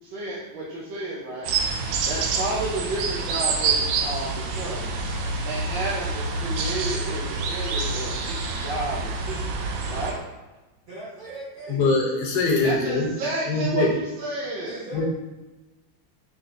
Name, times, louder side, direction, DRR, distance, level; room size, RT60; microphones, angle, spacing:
voice 1, 0.0-1.5 2.1-4.9 5.4-10.2 12.6-14.8, right 2 dB, 70° right, -6 dB, 1.4 m, -31 dB
sound 1, 1.4-10.1, right 4 dB, 90° right, 1.4 m, -27 dB
voice 2, 9.9-10.4 10.9-11.8 14.7-15.0, right 2 dB, 55° right, -13 dB, 1.8 m, -40 dB
voice 3, 11.7-13.1 13.4-13.9 14.9-15.0, left 3 dB, 65° left, 0 dB, 1.1 m, -22 dB
5.2 x 2.9 x 2.5 m, 1.1 s
omnidirectional pair, 2.2 m